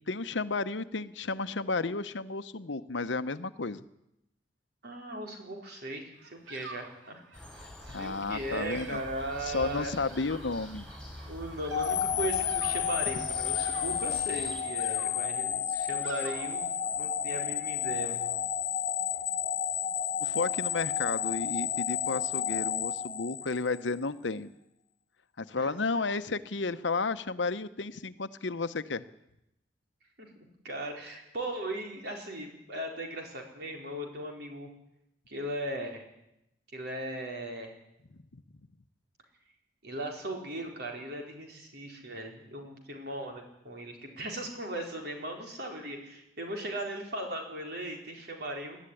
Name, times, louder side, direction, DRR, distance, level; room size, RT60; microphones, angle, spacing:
voice 1, 0.1-3.8 7.9-9.0 9.4-10.8 20.2-24.5 25.4-29.0 38.1-38.4, left 3 dB, 70° left, 12 dB, 0.9 m, -32 dB
voice 2, 4.8-7.2 8.0-10.0 11.3-18.4 25.6-25.7 30.2-34.7 35.3-36.0 36.7-37.7 39.8-48.8, right 1 dB, 55° right, 2 dB, 4.6 m, -38 dB
Bird vocalization bird call bird song, 6.1-17.1, right 3 dB, 85° right, 3.0 m, -50 dB
sound 1, 7.3-14.6, left 1 dB, ahead, 6.4 m, -46 dB
sound 2, 11.7-23.9, left 9 dB, 40° left, 1.4 m, -31 dB
21.0 x 13.5 x 10.0 m, 0.85 s
head